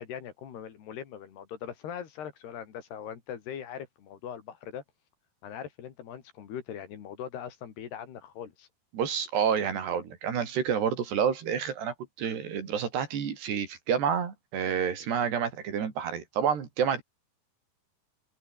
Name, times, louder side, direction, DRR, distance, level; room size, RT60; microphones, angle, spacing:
voice 1, 0.0-4.8 5.4-8.7, left 8 dB, 70° left, 4.6 m, -41 dB
voice 2, 8.9-17.0, right 7 dB, 70° right, 5.6 m, -29 dB
open air
omnidirectional pair, 5.0 m